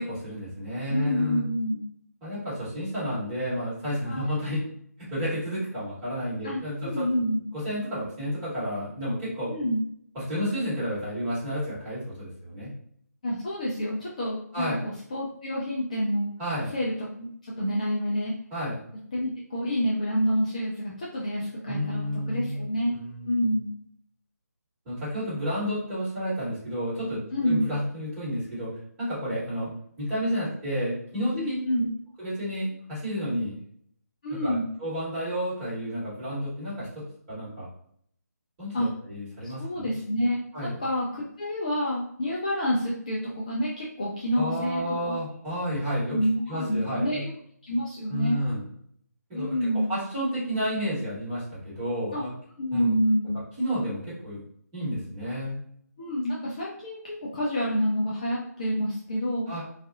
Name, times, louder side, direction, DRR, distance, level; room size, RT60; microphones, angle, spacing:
voice 1, 0.0-1.5 2.2-4.6 5.0-7.0 7.5-9.6 10.1-12.7 14.5-14.8 16.4-16.7 18.5-18.8 21.7-22.6 22.9-23.5 24.8-28.7 29.0-29.7 30.0-31.6 32.2-33.5 34.3-37.7 38.6-39.9 40.5-40.8 44.3-46.2 46.5-47.2 48.1-48.6 49.3-49.6 49.9-52.3 52.7-52.9 53.6-54.4 54.7-55.6 59.5-59.6, equal, 20° right, -12 dB, 1.4 m, -31 dB
voice 2, 0.9-1.8 4.1-4.3 6.4-7.4 9.5-9.8 13.2-16.3 16.7-17.3 17.6-18.3 19.1-22.9 23.3-23.7 27.3-27.7 31.3-31.9 34.2-34.7 38.7-38.9 39.4-45.1 46.1-47.3 47.7-48.4 49.3-49.9 52.1-52.2 52.6-53.4 56.0-59.5, equal, 25° left, -5 dB, 0.3 m, -28 dB
2.6 x 2.4 x 2.4 m, 0.66 s
figure-of-eight pair, 150°, 9 cm